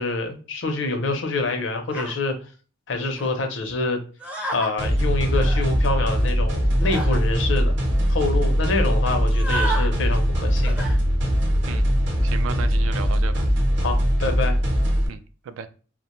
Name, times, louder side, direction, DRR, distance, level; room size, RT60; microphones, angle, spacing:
voice 1, 0.0-2.4 2.9-4.0 4.5-7.8 8.1-10.9 13.8-14.6, left 3 dB, 65° left, 5 dB, 0.5 m, -26 dB
sound 1, 1.9-2.2 3.2-3.3 4.2-4.7 5.2-5.6 6.8-7.2 7.8-7.9 8.1-8.3 9.2-9.9 10.6-11.0 11.5-11.8, right 1 dB, 5° right, 0.4 m, -31 dB
sound 2, 4.8-15.1, equal, 60° right, 0.7 m, -21 dB
voice 2, 12.2-13.5 15.1-15.7, right 7 dB, 90° right, 10 dB, 0.3 m, -34 dB
2.4 x 2.1 x 2.9 m, 0.37 s
head